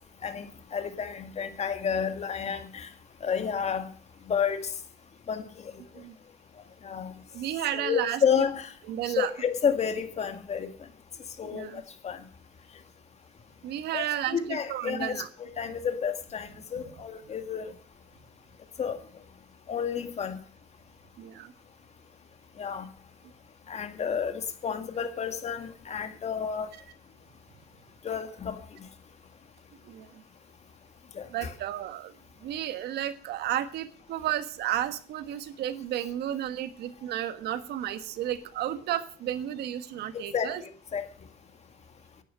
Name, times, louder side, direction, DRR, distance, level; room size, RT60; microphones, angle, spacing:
voice 1, 0.2-2.9 3.2-3.9 4.3-4.7 5.3-5.7 6.8-7.1 7.7-8.7 9.1-10.7 11.4-11.7 12.0-12.2 13.9-17.7 18.8-19.0 19.7-20.4 22.6-22.9 23.7-26.7 28.0-28.6 31.1-31.5 40.1-41.1, left 7 dB, 40° left, 2.0 m, -30 dB
voice 2, 7.3-8.2 8.9-9.3 11.5-11.8 13.6-15.3 16.8-16.9 21.2-21.5 29.8-30.2 31.3-40.6, right 11 dB, 75° right, 1.5 m, -33 dB
11.5 x 9.3 x 7.5 m
cardioid pair, 110°, 17 cm